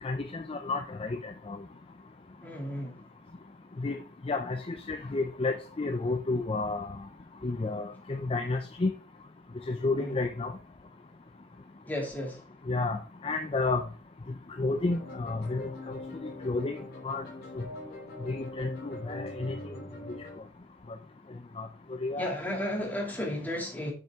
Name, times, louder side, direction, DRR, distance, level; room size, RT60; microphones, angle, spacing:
voice 1, 0.0-1.6 3.8-7.0 7.4-8.9 9.7-10.5 12.7-13.8 14.6-16.0 16.4-16.8 17.0-17.2 17.6-17.7 18.3-19.6 21.6-21.7 22.0-22.3, left 3 dB, 30° left, 0.5 m, -31 dB
voice 2, 2.4-3.0 9.9-10.2 11.8-12.5 22.2-23.9, left 1 dB, 10° left, 2.5 m, -34 dB
sound 1, 14.9-20.4, left 1 dB, 55° left, 2.9 m, -42 dB
7.4 x 6.2 x 3.6 m
head